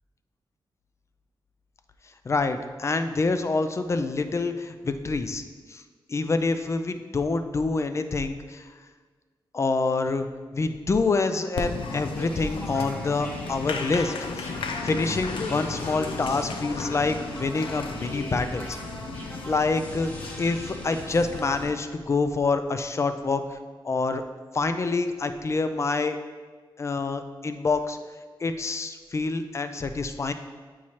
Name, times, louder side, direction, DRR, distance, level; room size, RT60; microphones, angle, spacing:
voice 1, 2.3-5.4 5.7-5.8 6.1-8.7 9.5-10.3 10.5-14.5 14.8-18.8 19.4-20.1 20.4-23.6 23.8-24.2 24.5-26.2 26.8-28.0 28.4-30.3, left 3 dB, 35° left, 9 dB, 0.4 m, -26 dB
Applause, 11.6-21.7, left 4 dB, 90° left, 0.5 m, -35 dB
sound 1, 12.1-21.6, equal, 15° left, 1.0 m, -43 dB
8.4 x 4.6 x 2.9 m, 1.5 s
wide cardioid pair, 115°, 9 cm